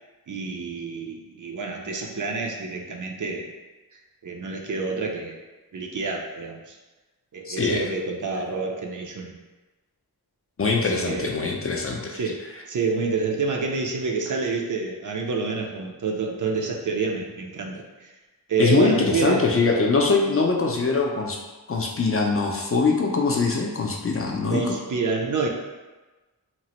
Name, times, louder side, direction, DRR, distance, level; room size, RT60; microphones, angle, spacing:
voice 1, 0.3-3.5 3.9-5.4 5.7-6.8 7.3-9.3 10.8-11.3 12.1-12.4 12.7-18.1 18.5-19.5 24.5-25.5, right 4 dB, 55° right, 1 dB, 0.5 m, -28 dB
voice 2, 7.5-7.8 10.6-12.2 18.6-21.4 21.7-24.8, left 4 dB, 40° left, 0 dB, 0.4 m, -22 dB
2.9 x 2.0 x 2.9 m, 1.2 s
wide cardioid pair, 55°, 38 cm